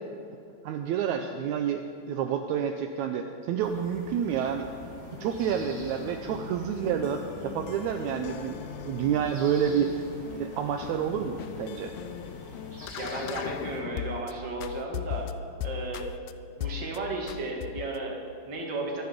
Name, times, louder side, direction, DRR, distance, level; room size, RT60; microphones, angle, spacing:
voice 1, 0.6-1.8 2.1-4.7 5.2-10.0 10.3-11.9, right 8 dB, 80° right, 5 dB, 1.7 m, -29 dB
sound 1, 3.6-13.8, right 1 dB, 20° right, 3.3 m, -47 dB
sound 2, 4.6-14.3 14.6-16.3 16.6-17.0 17.3-18.0, left 11 dB, 85° left, 1.7 m, -39 dB
voice 2, 13.0-15.3 15.6-16.1 16.6-19.0, right 2 dB, 35° right, 0 dB, 2.3 m, -34 dB
23.0 x 9.6 x 5.2 m, 2.6 s
omnidirectional pair, 4.0 m